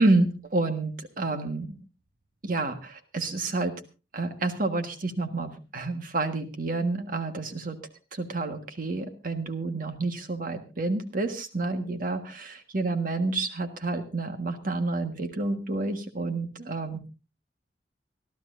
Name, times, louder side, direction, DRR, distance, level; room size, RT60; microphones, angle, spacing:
voice 1, 0.0-1.8 2.4-3.7 4.1-7.8 8.1-17.1, right 2 dB, 50° right, 7 dB, 1.5 m, -29 dB
26.0 x 12.5 x 2.6 m, 0.31 s
head